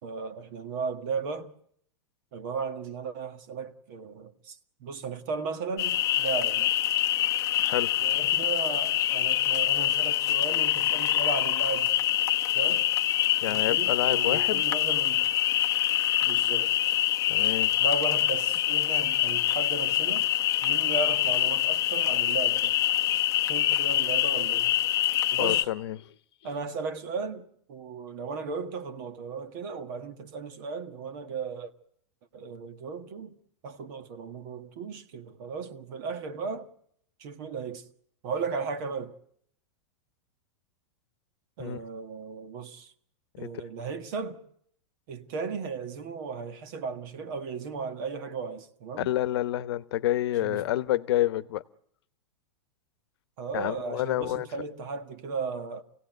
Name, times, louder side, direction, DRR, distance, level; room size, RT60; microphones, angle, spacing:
voice 1, 0.0-1.5 2.3-6.8 8.0-11.9 12.5-12.9 13.5-15.3 16.2-16.7 17.8-20.3 20.6-22.8 23.4-24.7 25.3-25.7 26.4-31.7 32.3-33.4 33.6-36.7 37.2-37.9 38.2-39.2 41.6-42.9 43.4-44.4 45.1-49.1 50.4-50.6 53.4-55.8, right 5 dB, 45° right, 1.6 m, -35 dB
sound 1, 5.8-25.6, left 13 dB, 25° left, 0.9 m, -25 dB
voice 2, 7.6-8.0 13.4-14.6 17.3-17.8 25.4-26.1 41.6-41.8 43.3-43.5 49.0-51.6 53.5-54.5, left 14 dB, 60° left, 1.0 m, -28 dB
27.0 x 17.0 x 9.2 m
supercardioid pair, 170°, 15 cm